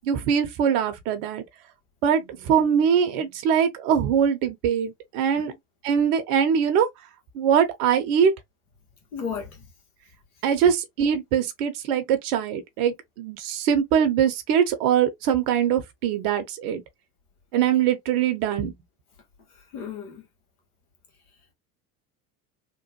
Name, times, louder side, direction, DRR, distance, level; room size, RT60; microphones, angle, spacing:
voice 1, 0.0-1.4 2.0-5.5 5.8-6.9 7.3-8.3 10.4-16.8 17.5-18.7, right 8 dB, 65° right, 0.8 m, -22 dB
voice 2, 9.1-9.7 10.6-10.7 19.5-20.3, left 6 dB, 85° left, 1.3 m, -34 dB
3.0 x 2.1 x 2.8 m
hypercardioid pair, 75°, 44 cm